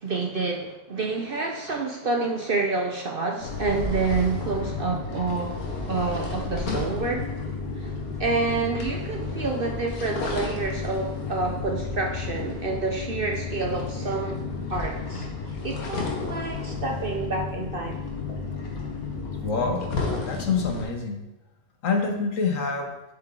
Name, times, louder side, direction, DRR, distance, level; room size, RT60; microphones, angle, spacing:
voice 1, 0.0-5.6 5.9-7.3 7.8-7.9 8.2-14.4 14.7-15.3 15.6-18.1, right 3 dB, 50° right, 1 dB, 0.7 m, -28 dB
sound 1, 3.4-20.8, left 4 dB, 80° left, 1.7 m, -32 dB
sound 2, 11.8-17.4, left 1 dB, 30° left, 0.8 m, -44 dB
voice 2, 19.4-19.9 20.2-21.2 21.8-22.9, left 4 dB, 65° left, 3 dB, 1.3 m, -26 dB
7.5 x 6.0 x 3.8 m, 0.97 s
omnidirectional pair, 1.5 m